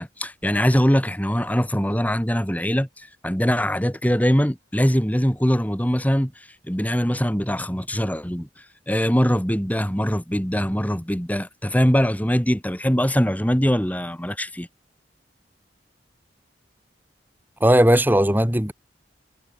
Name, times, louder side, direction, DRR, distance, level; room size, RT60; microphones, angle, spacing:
voice 1, 0.0-6.3 6.7-8.5 8.9-14.7, equal, 10° left, 4.1 m, -22 dB
voice 2, 17.6-18.7, right 1 dB, 10° right, 2.3 m, -17 dB
head